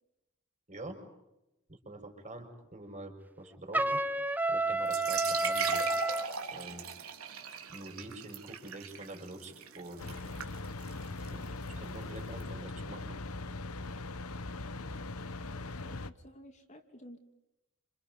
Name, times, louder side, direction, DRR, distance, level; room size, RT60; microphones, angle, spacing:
voice 1, 0.7-1.0 1.7-4.0 4.5-5.8 6.5-6.8 7.7-10.0 11.3-13.2, right 2 dB, 35° right, 4 dB, 5.8 m, -46 dB
Trumpet, 3.7-6.3, right 2 dB, 10° right, 1.0 m, -30 dB
sound 1, 4.8-12.4, right 7 dB, 90° right, 3.6 m, -40 dB
sound 2, 10.0-16.1, left 2 dB, 85° left, 1.1 m, -40 dB
voice 2, 15.7-17.2, equal, 35° left, 4 dB, 2.8 m, -52 dB
29.5 x 28.0 x 5.5 m, 0.95 s
head